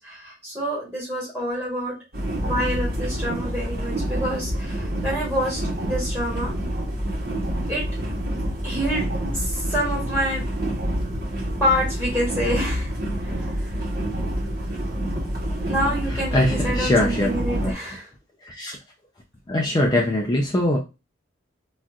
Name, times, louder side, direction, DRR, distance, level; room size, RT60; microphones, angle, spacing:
voice 1, 0.0-2.0 2.4-6.5 7.7-7.9 8.6-10.5 11.6-12.9 13.2-13.7 15.7-18.1, equal, 5° left, 1.5 m, -27 dB
sound 1, 2.1-17.7, right 1 dB, 45° right, 1.0 m, -27 dB
voice 2, 16.1-17.3 17.6-17.7 18.4-18.8 19.5-20.8, left 1 dB, 20° left, 0.4 m, -22 dB
4.2 x 2.4 x 2.3 m
head